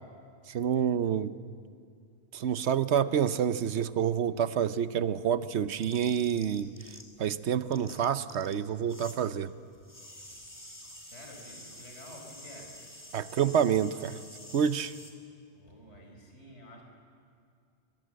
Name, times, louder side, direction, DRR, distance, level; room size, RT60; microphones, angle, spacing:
voice 1, 0.5-1.4 2.3-9.5 13.1-14.2 14.5-15.0, right 8 dB, 75° right, 13 dB, 1.0 m, -28 dB
sound 1, 4.6-7.3 7.5-9.2 9.5-15.1, left 1 dB, 15° left, 3.0 m, -49 dB
voice 2, 11.0-12.7 15.5-16.8, left 1 dB, 85° left, 1 dB, 5.1 m, -50 dB
23.0 x 21.5 x 7.6 m, 2.4 s
omnidirectional pair, 1.1 m